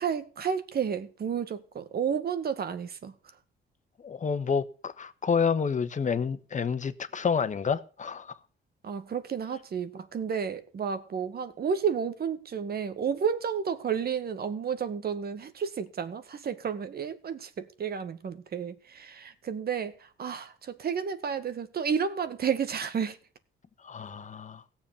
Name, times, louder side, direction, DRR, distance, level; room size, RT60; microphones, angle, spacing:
voice 1, 0.0-3.1 8.8-19.9 20.2-23.2, right 7 dB, 50° right, 1.8 m, -31 dB
voice 2, 4.0-8.3 23.8-24.6, left 6 dB, 40° left, 1.3 m, -29 dB
17.0 x 7.3 x 7.1 m
cardioid pair, 90°, 20 cm